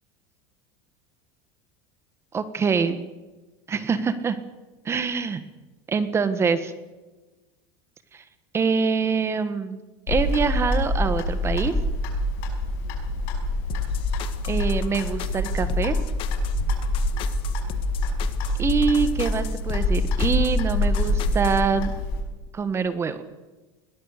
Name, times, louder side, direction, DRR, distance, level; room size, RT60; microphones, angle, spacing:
voice 1, 2.3-3.0 3.7-4.4 4.8-5.4 5.9-6.7 8.1-8.2 8.5-9.8 10.1-11.7 14.4-15.9 18.6-21.9 22.5-23.2, right 5 dB, 20° right, 12 dB, 1.4 m, -24 dB
Clock, 10.1-22.2, left 1 dB, 65° left, 5.8 m, -25 dB
sound 1, 13.7-21.6, left 11 dB, 45° left, 1.6 m, -35 dB
21.5 x 18.5 x 6.7 m, 1.1 s
supercardioid pair, 145°, 12 cm